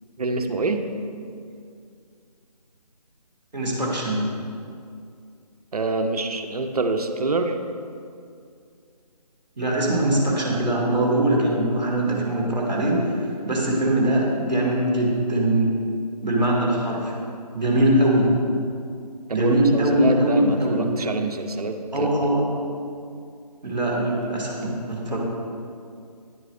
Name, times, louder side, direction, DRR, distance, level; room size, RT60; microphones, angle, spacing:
voice 1, 0.2-0.9 5.7-7.6 19.3-22.3, right 3 dB, 65° right, 6 dB, 0.6 m, -26 dB
voice 2, 3.5-4.2 9.6-13.0 13.4-15.7 16.2-17.1 17.5-18.3 19.3-20.9 21.9-22.4 23.6-24.6 24.9-25.2, right 1 dB, ahead, -24 dB, 0.5 m, -21 dB
10.0 x 4.7 x 2.5 m, 2.3 s
figure-of-eight pair, 160°, 21 cm